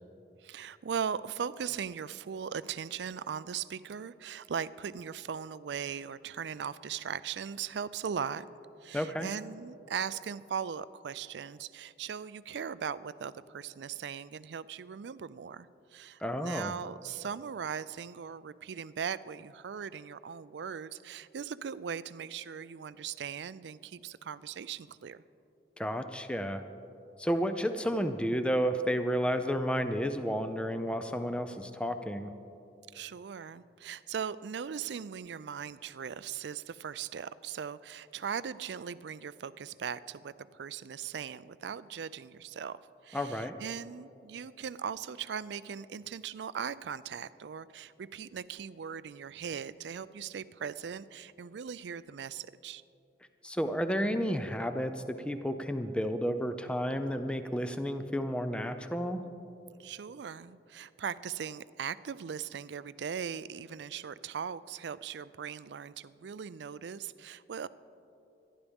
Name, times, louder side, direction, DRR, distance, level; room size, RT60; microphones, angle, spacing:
voice 1, 0.4-8.5 8.8-25.2 32.9-52.8 59.8-67.7, right 7 dB, 75° right, 16 dB, 0.4 m, -39 dB
voice 2, 8.9-9.3 16.2-16.7 25.8-26.6 27.2-32.3 43.1-43.5 53.4-59.2, equal, 5° left, 8 dB, 0.5 m, -31 dB
26.0 x 11.0 x 3.5 m, 2.9 s
head